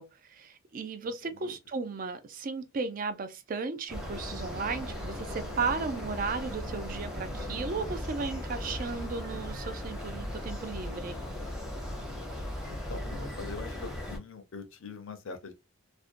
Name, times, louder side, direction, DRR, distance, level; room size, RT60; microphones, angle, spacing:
voice 1, 0.0-11.2, right 4 dB, 40° right, 0.3 m, -35 dB
sound 1, 3.9-14.2, left 1 dB, 5° right, 0.6 m, -37 dB
Wind instrument woodwind instrument, 4.4-8.1, right 6 dB, 85° right, 0.6 m, -49 dB
voice 2, 12.7-15.5, left 4 dB, 65° left, 0.5 m, -43 dB
2.5 x 2.1 x 2.4 m
head